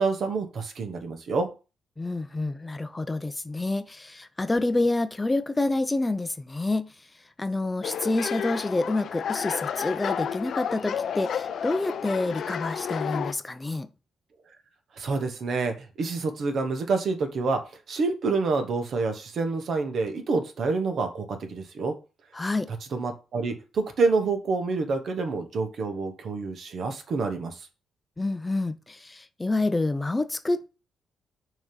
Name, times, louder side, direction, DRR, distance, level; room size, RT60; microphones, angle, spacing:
voice 1, 0.0-1.5 15.0-17.6 17.9-21.9 22.9-27.5, right 4 dB, 60° right, 1.2 m, -27 dB
voice 2, 2.0-6.9 7.4-13.9 22.3-22.7 28.2-30.7, left 2 dB, 20° left, 0.5 m, -28 dB
sound 1, 7.8-13.3, left 8 dB, 65° left, 0.5 m, -31 dB
6.2 x 3.0 x 5.3 m
cardioid pair, 75°, 0 cm